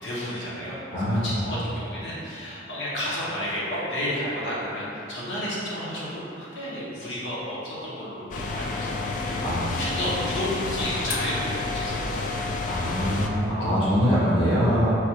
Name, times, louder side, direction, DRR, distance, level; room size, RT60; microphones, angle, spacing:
voice 1, 0.0-9.4 9.7-12.3, equal, 75° left, -8 dB, 1.2 m, -32 dB
voice 2, 0.9-1.4 9.4-9.7 12.7-14.9, equal, 25° left, -10 dB, 1.3 m, -23 dB
sound 1, 8.3-13.3, left 3 dB, 45° left, 0.3 m, -29 dB
4.5 x 2.4 x 4.4 m, 2.7 s
head